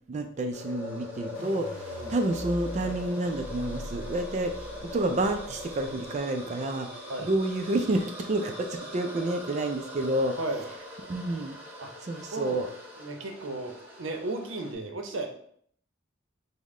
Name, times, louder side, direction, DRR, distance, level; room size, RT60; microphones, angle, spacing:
voice 1, 0.1-10.4 11.0-11.6 12.0-12.7, right 1 dB, 35° right, 6 dB, 0.3 m, -29 dB
sound 1, 0.5-14.7, left 1 dB, 10° right, 0.8 m, -42 dB
sound 2, 1.3-6.4, equal, 40° left, 1.2 m, -42 dB
voice 2, 13.0-13.7 14.0-15.3, right 2 dB, 75° right, 4 dB, 0.7 m, -34 dB
5.3 x 2.1 x 3.6 m, 0.64 s
head